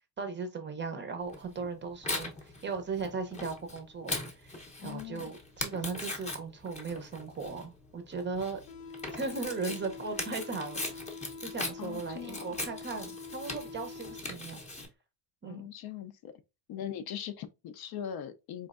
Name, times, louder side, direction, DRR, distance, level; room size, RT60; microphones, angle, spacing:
voice 1, 0.2-2.3 2.6-4.2 4.4-4.5 4.8-8.6 9.1-10.8 11.4-14.6 15.4-15.6, right 4 dB, 25° right, 0.5 m, -37 dB
Tearing, 1.3-14.9, left 2 dB, 15° left, 0.7 m, -40 dB
voice 2, 4.8-5.3 11.8-12.6 15.4-16.3 16.7-18.7, left 9 dB, 55° left, 0.5 m, -41 dB
sound 1, 8.7-14.6, left 4 dB, 70° left, 0.8 m, -45 dB
4.4 x 3.1 x 2.3 m
cardioid pair, 175°, 47 cm